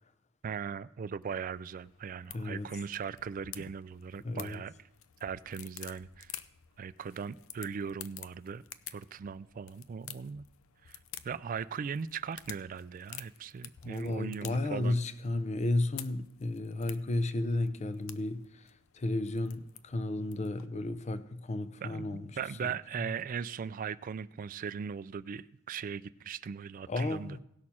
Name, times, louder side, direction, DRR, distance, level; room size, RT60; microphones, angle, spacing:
voice 1, 0.4-4.7 5.2-6.4 6.8-8.6 8.9-10.5 10.8-11.0 11.2-15.0 21.8-27.4, right 6 dB, 40° right, 0.3 m, -39 dB
sound 1, 1.2-20.7, left 11 dB, 80° left, 0.5 m, -51 dB
voice 2, 2.3-2.7 4.2-4.6 13.8-22.3 22.6-22.7 26.9-27.4, left 2 dB, 35° left, 0.6 m, -33 dB
17.5 x 6.4 x 4.3 m
head